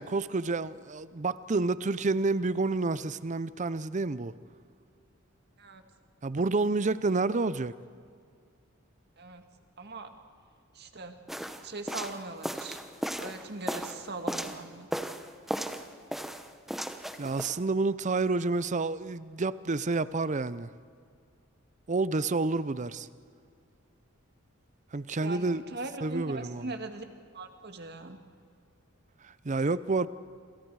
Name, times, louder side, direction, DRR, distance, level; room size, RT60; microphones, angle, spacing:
voice 1, 0.0-4.3 6.2-7.7 17.2-20.7 21.9-23.1 24.9-25.6 26.0-26.7 29.2-30.1, right 3 dB, 35° right, 16 dB, 0.6 m, -29 dB
voice 2, 9.8-10.1 10.7-11.2 11.6-12.8 13.2-14.9 25.2-27.1 27.3-28.2, right 2 dB, 55° right, 7 dB, 1.8 m, -40 dB
sound 1, 11.3-14.6 14.9-15.9 16.1-17.6, equal, ahead, 0.9 m, -35 dB
27.5 x 27.0 x 4.8 m, 2.2 s
head